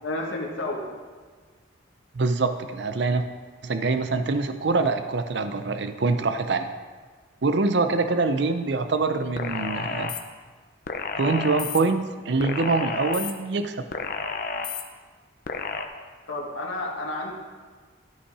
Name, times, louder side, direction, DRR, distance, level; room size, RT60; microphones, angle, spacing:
voice 1, 0.0-0.9 16.3-17.3, left 2 dB, 85° left, -1 dB, 1.5 m, -31 dB
voice 2, 2.1-3.3 3.6-6.7 7.4-10.1 11.2-13.8, right 3 dB, 60° right, 9 dB, 0.5 m, -24 dB
sound 1, 9.4-10.2 10.9-11.8 12.4-13.3 13.9-14.8 15.5-15.8, left 4 dB, 45° left, 0.6 m, -31 dB
12.5 x 5.8 x 4.8 m, 1.5 s
head